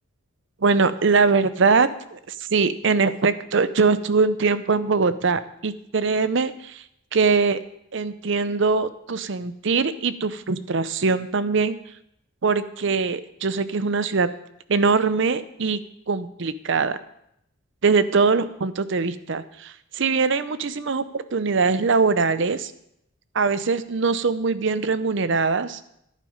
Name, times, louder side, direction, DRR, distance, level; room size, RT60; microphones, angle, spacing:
voice 1, 0.6-6.8 7.1-7.6 7.9-11.8 12.4-14.3 14.7-15.8 16.1-17.0 17.8-22.7 23.3-25.8, right 4 dB, 65° right, 13 dB, 0.6 m, -22 dB
11.0 x 9.3 x 5.1 m, 0.75 s
head